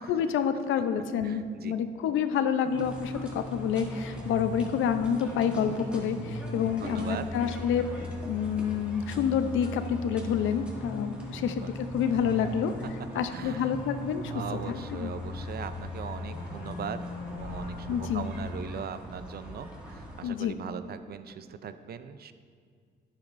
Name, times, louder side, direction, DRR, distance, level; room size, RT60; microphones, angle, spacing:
voice 1, 0.1-7.9 8.2-12.7 13.1-14.3 14.7-15.1 17.9-18.3 20.2-20.6, left 7 dB, 80° left, 10 dB, 0.6 m, -28 dB
voice 2, 1.2-1.7 6.5-7.3 11.3-11.7 13.3-13.7 14.3-22.3, right 7 dB, 50° right, 11 dB, 0.5 m, -40 dB
sound 1, 2.6-18.6, left 3 dB, 50° left, 1.6 m, -40 dB
sound 2, 2.8-20.3, right 1 dB, 5° right, 1.9 m, -44 dB
11.5 x 8.8 x 2.6 m, 2.1 s
cardioid pair, 90°, 20 cm